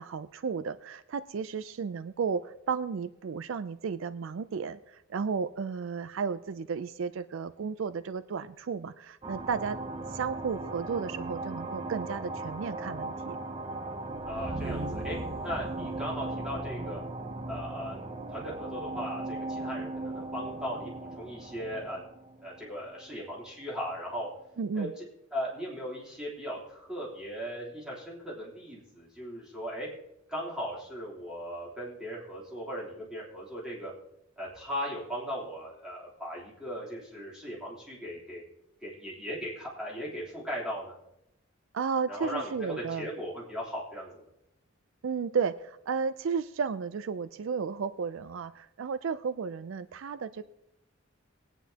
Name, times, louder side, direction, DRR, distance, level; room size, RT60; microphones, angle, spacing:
voice 1, 0.0-9.8 10.1-13.4 24.6-24.9 41.7-43.1 45.0-50.4, right 6 dB, 65° right, 13 dB, 0.4 m, -33 dB
sound 1, 9.2-23.4, right 2 dB, 25° right, 0.7 m, -37 dB
voice 2, 14.2-15.2 15.4-17.0 17.5-22.1 22.4-24.3 24.7-25.0 25.3-29.9 30.3-33.9 34.4-38.4 38.8-41.0 42.1-44.2, equal, 5° right, -6 dB, 3.4 m, -38 dB
20.5 x 9.2 x 2.8 m, 0.84 s
head